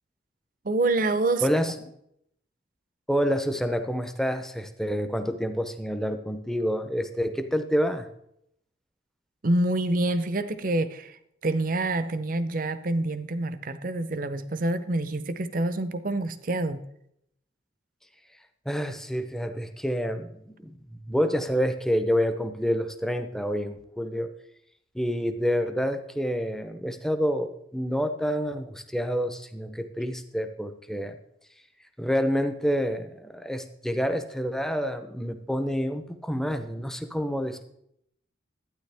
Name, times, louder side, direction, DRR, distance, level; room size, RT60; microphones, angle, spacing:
voice 1, 0.6-1.4 9.4-16.8, right 2 dB, 45° right, 12 dB, 0.6 m, -27 dB
voice 2, 1.4-1.8 3.1-8.1 18.7-24.3 24.9-31.2 32.0-37.6, equal, ahead, 8 dB, 0.6 m, -28 dB
12.0 x 9.5 x 3.4 m, 0.76 s
head